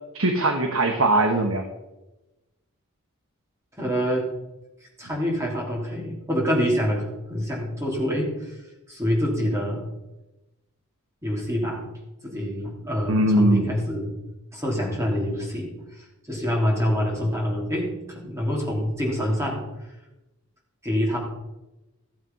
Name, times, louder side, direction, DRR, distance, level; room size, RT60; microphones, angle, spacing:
voice 1, 0.1-1.7 13.1-13.6, right 1 dB, 75° right, 5 dB, 1.3 m, -20 dB
voice 2, 3.8-4.3 5.0-8.6 8.9-9.9 11.2-11.8 12.2-14.1 14.5-19.9 20.8-21.2, equal, 15° right, -2 dB, 3.5 m, -26 dB
15.5 x 7.5 x 5.6 m, 1.0 s
head